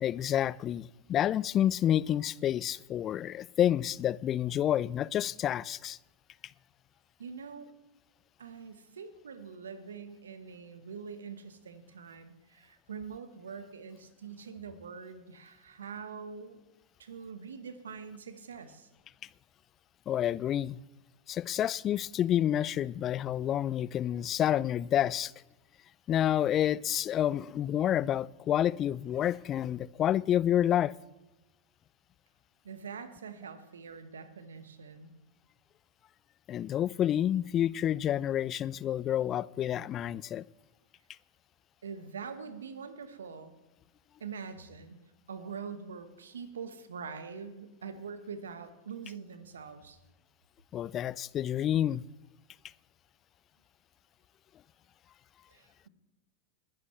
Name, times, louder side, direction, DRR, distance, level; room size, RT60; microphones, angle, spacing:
voice 1, 0.0-6.0 20.1-20.8 21.3-25.3 26.1-30.9 36.5-40.4 50.7-52.0, left 11 dB, 35° left, 0.3 m, -29 dB
voice 2, 7.2-7.7 8.4-16.6 17.0-18.9 32.6-35.1 41.8-43.5 44.2-45.0 45.3-50.0 55.5-55.9, right 6 dB, 80° right, 1.2 m, -44 dB
20.5 x 10.5 x 3.2 m
hypercardioid pair, 90°, 0 cm